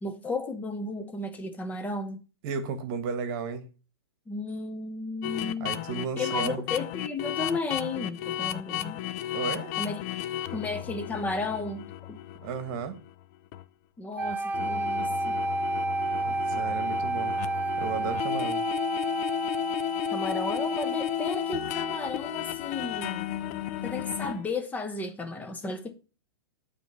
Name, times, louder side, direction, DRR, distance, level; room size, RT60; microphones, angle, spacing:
voice 1, 0.0-2.2 4.3-5.7 6.2-9.0 9.8-10.0 10.5-12.2 14.0-15.4 20.1-23.3 23.8-25.9, left 3 dB, 10° left, 0.9 m, -33 dB
voice 2, 2.4-3.7 5.6-6.6 9.3-9.7 12.4-13.0 16.2-17.4 17.8-18.6, right 6 dB, 45° right, 1.4 m, -34 dB
sound 1, 5.2-13.1 13.5-13.6 14.2-24.5, left 14 dB, 45° left, 0.5 m, -34 dB
sound 2, 14.2-22.2, right 3 dB, 10° right, 0.5 m, -31 dB
9.1 x 3.3 x 5.4 m
hypercardioid pair, 130°, 13 cm